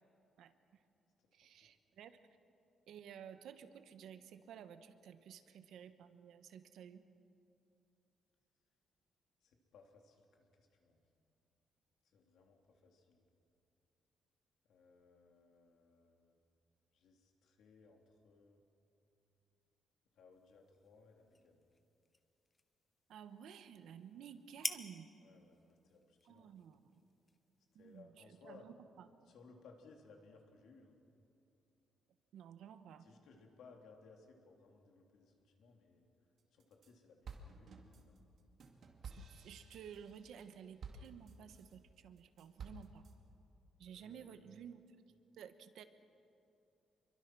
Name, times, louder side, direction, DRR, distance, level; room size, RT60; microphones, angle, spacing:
voice 1, 0.4-0.8 1.3-2.2 2.9-7.0 23.1-25.1 26.3-27.0 27.7-28.7 32.3-33.1 39.2-43.1 43.8-44.8 45.3-45.8, right 8 dB, 70° right, 10 dB, 1.2 m, -54 dB
voice 2, 1.2-1.7 9.4-11.0 12.0-13.3 14.6-16.4 16.9-18.6 20.1-21.6 24.2-24.3 25.2-26.6 27.7-28.7 29.2-31.0 33.0-38.2 43.9-44.6, left 4 dB, 70° left, 2 dB, 3.3 m, -63 dB
sound 1, 20.3-28.0, left 3 dB, 20° left, 0.9 m, -50 dB
sound 2, 36.4-36.9 37.2-41.8 42.2-43.1, right 4 dB, 45° right, 2.2 m, -53 dB
27.0 x 23.0 x 6.2 m, 2.7 s
cardioid pair, 175°, 0 cm